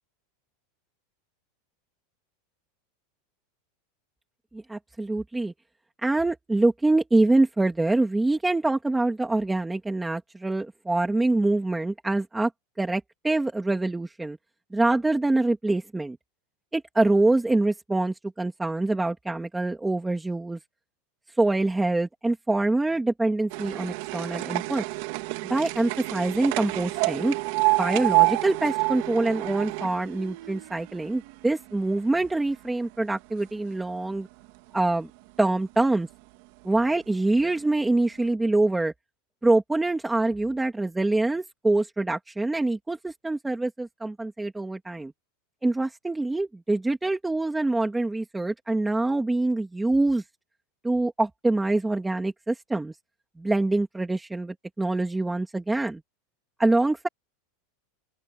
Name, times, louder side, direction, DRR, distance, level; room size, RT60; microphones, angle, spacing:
voice 1, 4.5-5.5 6.0-12.5 12.8-14.4 14.7-16.2 16.7-20.6 21.4-24.8 25.4-27.4 27.8-34.3 34.7-35.1 35.4-36.1 36.6-38.9 39.4-45.1 45.6-50.2 50.8-52.9 53.4-56.0 56.6-57.1, right 2 dB, 5° right, 2.1 m, -25 dB
sound 1, 23.5-31.7 32.1-33.0 33.7-33.8 34.1-34.2 34.4-34.5 35.4-35.5 36.1-36.2 36.9-37.0 37.4-37.5, right 25 dB, 50° right, 2.0 m, -28 dB
open air
supercardioid pair, 170°, 0 cm